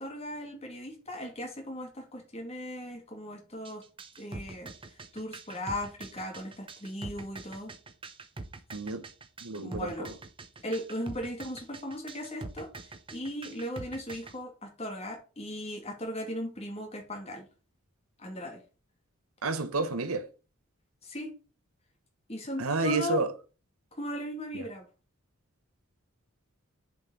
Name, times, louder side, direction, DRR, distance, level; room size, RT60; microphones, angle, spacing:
voice 1, 0.0-3.8 4.2-7.7 9.6-10.2 10.6-17.5 18.2-18.6 21.0-21.3 22.3-23.2 23.9-24.9, left 1 dB, 30° left, 2.5 m, -38 dB
sound 1, 3.6-14.3, right 3 dB, 25° right, 0.8 m, -44 dB
voice 2, 8.7-9.0 9.4-9.9 19.4-20.2 22.6-23.3, right 3 dB, 80° right, 1.2 m, -29 dB
7.1 x 5.1 x 5.1 m
head